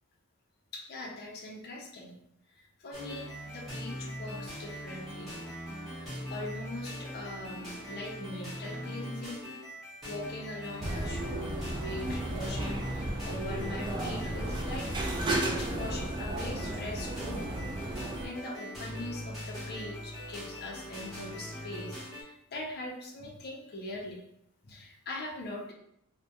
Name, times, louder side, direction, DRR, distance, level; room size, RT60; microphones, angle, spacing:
voice 1, 0.7-2.1 2.6-5.3 5.8-9.4 10.0-14.9 15.4-17.7 17.9-24.2 24.6-25.7, left 1 dB, 45° left, 0 dB, 0.5 m, -41 dB
sound 1, 2.9-22.2, equal, ahead, 0.8 m, -41 dB
sound 2, 10.8-18.3, right 1 dB, 20° right, 0.3 m, -34 dB
2.2 x 2.1 x 2.7 m, 0.76 s
head